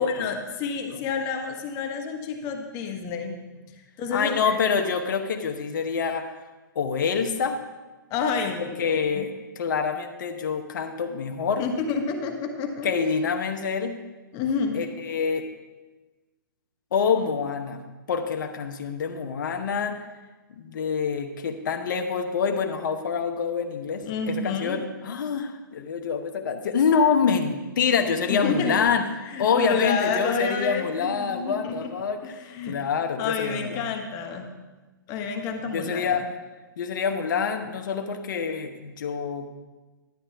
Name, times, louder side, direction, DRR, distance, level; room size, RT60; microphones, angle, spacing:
voice 1, 0.0-3.4 3.7-4.6 8.1-9.3 11.6-13.0 14.3-14.8 24.0-24.8 28.3-28.8 29.3-31.9 32.2-32.8 33.2-34.5 35.1-36.2, left 5 dB, 30° left, 4 dB, 1.2 m, -29 dB
voice 2, 4.1-6.3 6.7-7.6 8.6-9.3 9.6-11.6 12.8-14.0 14.7-15.4 16.9-17.8 18.1-20.0 20.6-29.0 29.4-32.2 32.7-33.8 35.7-36.3 36.8-39.5, left 6 dB, 60° left, 6 dB, 1.0 m, -26 dB
11.5 x 8.8 x 3.5 m, 1.2 s
hypercardioid pair, 135°, 11 cm